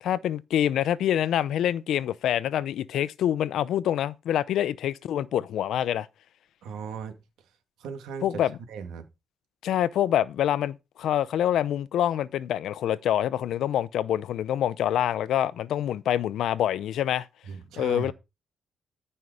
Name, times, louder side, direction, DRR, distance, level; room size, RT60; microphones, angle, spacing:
voice 1, 0.0-6.1 8.2-8.6 9.6-17.3 17.8-18.1, left 11 dB, 75° left, 0.7 m, -26 dB
voice 2, 6.6-7.1 7.8-8.4 8.7-9.1 17.5-18.1, right 5 dB, 85° right, 2.4 m, -37 dB
14.0 x 5.7 x 5.0 m
cardioid pair, 90°, 0 cm